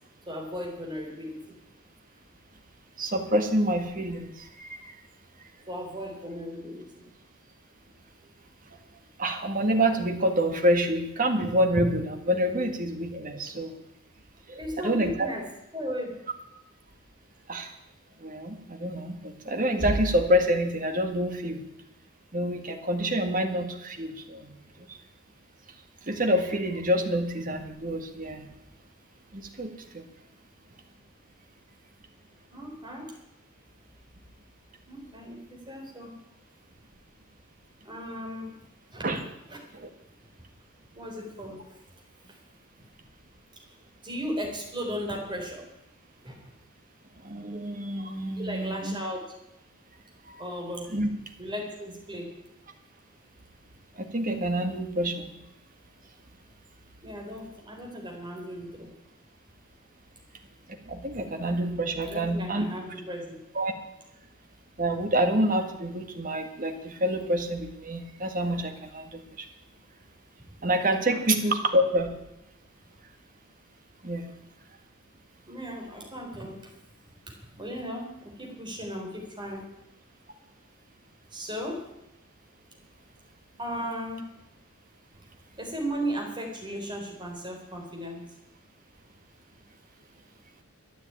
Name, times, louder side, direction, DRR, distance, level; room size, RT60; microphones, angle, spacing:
voice 1, 0.3-1.6 5.7-7.1 14.6-15.5 15.7-16.2 32.5-33.2 34.9-36.2 37.8-39.0 39.5-39.6 40.9-41.8 42.2-42.4 43.7-43.8 44.0-45.7 46.2-46.5 48.4-49.3 50.4-50.9 51.4-52.4 57.0-58.9 62.0-63.4 71.1-71.2 75.5-76.7 77.6-79.7 81.3-81.8 83.6-84.3 85.6-88.3, equal, 20° right, 0 dB, 3.9 m, -36 dB
voice 2, 3.0-4.9 9.2-13.8 14.5-15.3 17.5-17.7 18.2-21.6 22.3-24.6 24.9-25.0 26.1-28.5 29.3-30.0 39.0-39.2 39.7-39.9 47.2-49.0 50.3-50.4 50.9-51.1 54.0-55.3 60.7-62.7 63.6-63.7 64.8-69.5 70.6-72.1 74.0-74.3, equal, 40° right, 5 dB, 1.8 m, -27 dB
13.5 x 9.8 x 8.9 m, 0.85 s
head